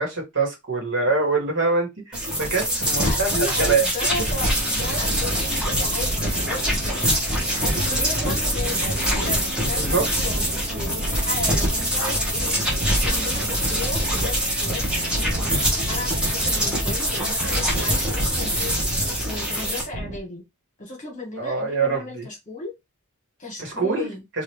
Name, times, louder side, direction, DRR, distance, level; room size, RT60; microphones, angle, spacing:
voice 1, 0.0-3.9 9.8-10.0 21.4-22.3 23.6-24.1, right 4 dB, 55° right, 1.5 m, -24 dB
sound 1, 2.1-19.8, equal, 5° right, 1.1 m, -24 dB
voice 2, 3.0-7.0 7.5-15.5 15.9-18.7 19.2-20.4 20.8-22.7 23.4-24.2, left 2 dB, 35° left, 1.6 m, -35 dB
sound 2, 4.1-20.2, right 1 dB, 30° right, 0.6 m, -32 dB
3.1 x 2.6 x 3.0 m
head